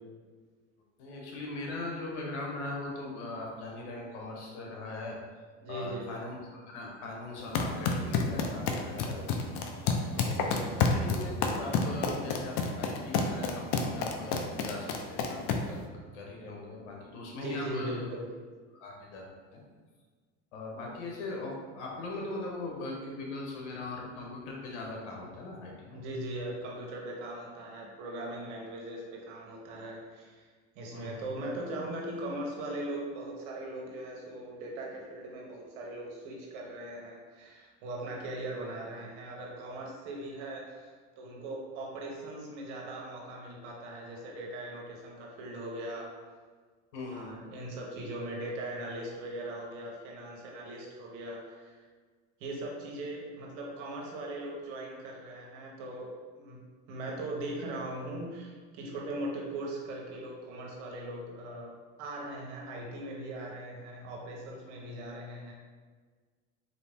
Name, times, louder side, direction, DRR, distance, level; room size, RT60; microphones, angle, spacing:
voice 1, 1.0-5.2 5.7-15.8 16.1-18.1 18.7-19.2 19.5-19.6 20.5-26.0 30.9-31.4 46.9-47.4, left 2 dB, 90° left, -1 dB, 1.1 m, -40 dB
voice 2, 5.6-6.2 10.2-10.8 17.4-18.3 25.9-30.5 30.8-46.2 47.1-51.8 52.4-56.6 56.9-65.5, right 1 dB, 85° right, -1 dB, 1.0 m, -40 dB
sound 1, 7.4-15.8, left 4 dB, 65° left, 0.6 m, -30 dB
4.0 x 2.9 x 3.5 m, 1.5 s
supercardioid pair, 100°, 34 cm